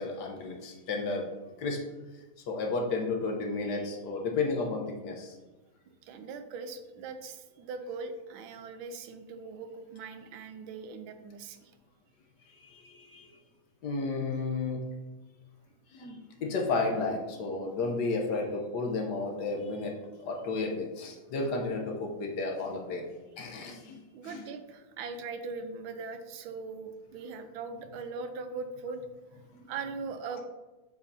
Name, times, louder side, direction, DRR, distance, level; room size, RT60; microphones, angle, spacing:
voice 1, 0.0-1.3 1.6-1.8 2.1-5.4 12.5-13.4 13.8-14.9 15.9-23.1 23.4-24.4 29.5-29.7, left 3 dB, 65° left, 1 dB, 1.3 m, -33 dB
voice 2, 6.0-11.7 24.1-29.0 29.7-30.4, right 4 dB, 85° right, 8 dB, 1.4 m, -40 dB
7.9 x 5.0 x 2.7 m, 1.2 s
omnidirectional pair, 2.1 m